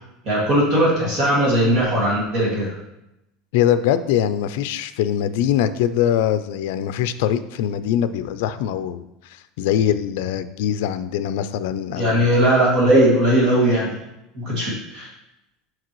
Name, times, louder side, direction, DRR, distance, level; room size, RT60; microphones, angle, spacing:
voice 1, 0.2-2.8 12.0-14.0 14.3-15.1, right 1 dB, 35° right, -4 dB, 2.1 m, -18 dB
voice 2, 3.5-9.0 9.3-12.3, left 10 dB, 70° left, 12 dB, 0.4 m, -22 dB
7.5 x 5.9 x 3.1 m, 0.88 s
cardioid pair, 165°, 0 cm